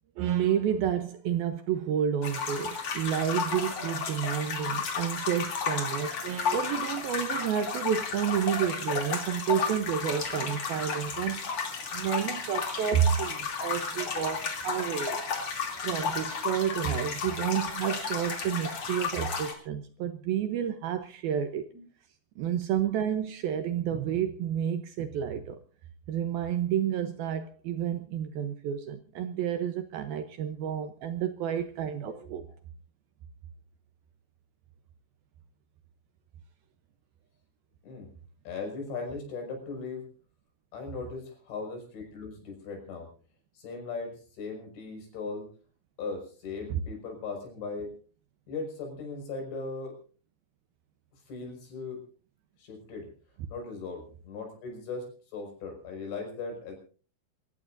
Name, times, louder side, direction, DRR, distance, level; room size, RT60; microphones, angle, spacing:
voice 1, 0.2-15.2 15.8-21.7 22.4-25.6 26.1-32.5 46.7-46.8, right 9 dB, 75° right, 2.4 m, -30 dB
sound 1, 2.2-19.5, left 5 dB, 40° left, 3.4 m, -33 dB
voice 2, 32.0-32.3 37.8-38.1 38.5-40.1 40.7-43.1 43.5-45.5 46.0-47.9 48.5-50.0 51.3-52.0 52.6-53.1 53.5-56.8, left 4 dB, 85° left, 7.9 m, -38 dB
27.0 x 15.0 x 2.6 m
omnidirectional pair, 5.0 m